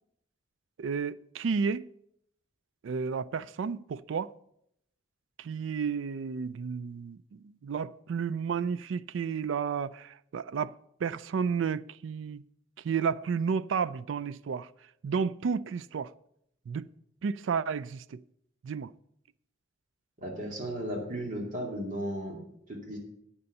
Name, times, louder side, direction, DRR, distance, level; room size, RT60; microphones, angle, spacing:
voice 1, 0.8-1.9 2.8-4.3 5.4-10.7 11.0-12.4 12.8-14.7 15.0-16.1 16.7-16.9 17.2-18.2 18.6-18.9, right 6 dB, 75° right, 0.4 m, -32 dB
voice 2, 20.2-23.0, equal, 40° right, 2.4 m, -35 dB
8.8 x 6.9 x 6.5 m
head